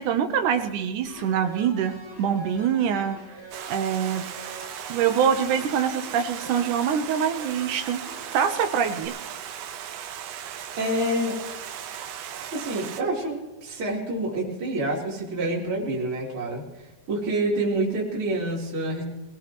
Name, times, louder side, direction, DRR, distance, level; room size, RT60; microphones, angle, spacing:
voice 1, 0.0-3.2 3.7-4.2 4.9-8.0 8.3-9.2, right 8 dB, 65° right, 6 dB, 2.2 m, -24 dB
sound 1, 1.1-9.1, right 1 dB, 40° left, 5.5 m, -44 dB
Stream, 3.5-13.0, right 9 dB, 85° right, 3.1 m, -37 dB
voice 2, 10.7-11.4 12.5-16.6 17.1-19.0, right 1 dB, 35° right, -5 dB, 4.2 m, -27 dB
25.0 x 18.0 x 3.1 m, 1.2 s
omnidirectional pair, 4.5 m